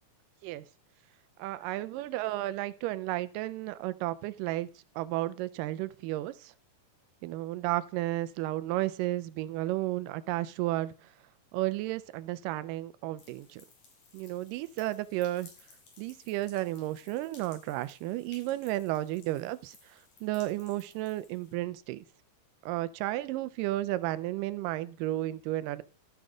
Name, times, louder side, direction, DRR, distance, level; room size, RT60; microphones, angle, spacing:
voice 1, 1.4-4.7 5.0-6.5 7.2-10.9 11.5-13.6 14.1-15.5 16.0-19.8 20.2-22.0 22.6-25.8, right 16 dB, 90° right, 15 dB, 2.2 m, -33 dB
sound 1, 13.2-21.5, left 4 dB, 60° left, 3.2 m, -58 dB
14.5 x 4.9 x 3.7 m, 0.37 s
omnidirectional pair, 3.7 m